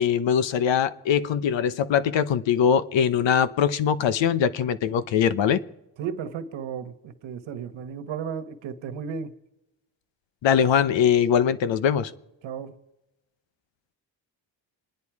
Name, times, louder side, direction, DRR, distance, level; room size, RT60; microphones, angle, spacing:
voice 1, 0.0-5.6 10.4-12.1, left 8 dB, 80° left, 1.0 m, -22 dB
voice 2, 6.0-9.3 12.4-12.8, right 7 dB, 85° right, 1.4 m, -34 dB
27.0 x 10.5 x 4.8 m
cardioid pair, 110°, 44 cm